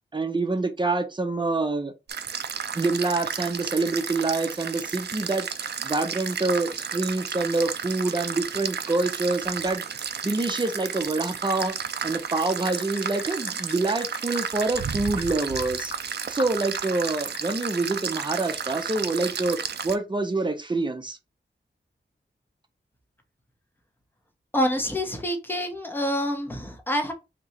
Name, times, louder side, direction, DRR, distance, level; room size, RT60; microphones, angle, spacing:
voice 1, 0.1-1.9 2.7-11.7 12.0-19.6 19.8-21.2, right 3 dB, 25° right, 0.7 m, -26 dB
sound 1, 2.1-20.0, right 7 dB, 60° right, 0.4 m, -33 dB
sound 2, 12.7-16.0 16.4-17.7, left 4 dB, 60° left, 0.7 m, -36 dB
voice 2, 24.5-27.1, equal, 10° left, 0.9 m, -27 dB
2.9 x 2.3 x 4.0 m
wide cardioid pair, 80°, 19 cm